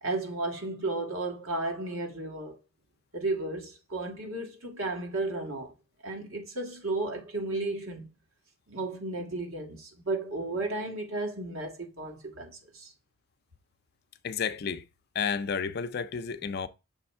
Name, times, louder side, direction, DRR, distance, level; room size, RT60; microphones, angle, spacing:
voice 1, 0.0-2.6 3.1-5.7 6.0-8.1 8.7-12.9, right 2 dB, 85° right, 1.5 m, -33 dB
voice 2, 14.2-14.9 15.1-16.7, left 6 dB, 50° left, 0.4 m, -31 dB
6.4 x 3.5 x 4.2 m
head